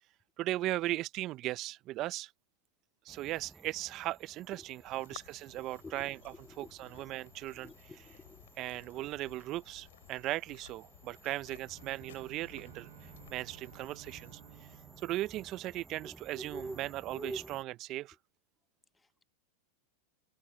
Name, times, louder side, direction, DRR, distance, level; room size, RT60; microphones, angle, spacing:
voice 1, 0.4-2.3 3.0-7.9 8.6-14.7 15.0-18.2, right 16 dB, 45° right, 0.7 m, -38 dB
sound 1, 3.1-17.6, right 3 dB, 10° right, 0.8 m, -51 dB
sound 2, 4.9-14.4, left 12 dB, 80° left, 4.1 m, -57 dB
voice 2, 7.6-8.5, left 4 dB, 15° left, 1.2 m, -52 dB
Bowed string instrument, 11.7-16.4, right 13 dB, 75° right, 7.3 m, -57 dB
open air
hypercardioid pair, 105°, 0 cm